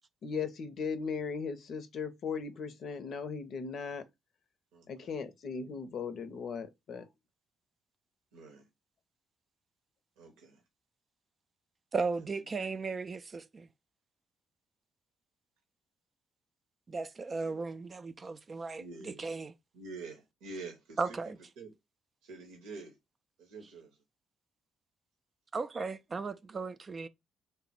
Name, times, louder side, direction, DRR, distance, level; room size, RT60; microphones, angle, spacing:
voice 1, 0.2-4.0 4.9-7.0, left 5 dB, 60° left, 0.6 m, -37 dB
voice 2, 8.3-8.6 10.2-10.6 18.8-19.2 19.7-21.0 21.6-21.7 22.3-22.9 23.4-23.9, right 3 dB, 75° right, 0.7 m, -46 dB
voice 3, 11.9-13.7 16.9-19.5 21.0-21.4 23.6-23.7 25.5-27.1, right 4 dB, 40° right, 0.3 m, -36 dB
3.3 x 2.0 x 4.0 m
hypercardioid pair, 45°, 0 cm